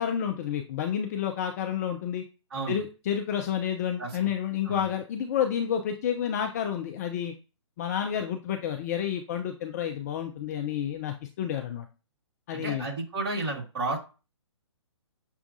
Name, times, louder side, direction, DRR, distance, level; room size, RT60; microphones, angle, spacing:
voice 1, 0.0-2.2 2.7-7.3 7.8-11.9 12.5-12.9, left 9 dB, 35° left, 5 dB, 0.4 m, -30 dB
voice 2, 2.5-2.8 4.0-4.1 4.6-4.9 12.5-14.0, right 2 dB, 50° right, -2 dB, 1.9 m, -32 dB
6.2 x 2.3 x 2.6 m, 0.32 s
figure-of-eight pair, 125°, 16 cm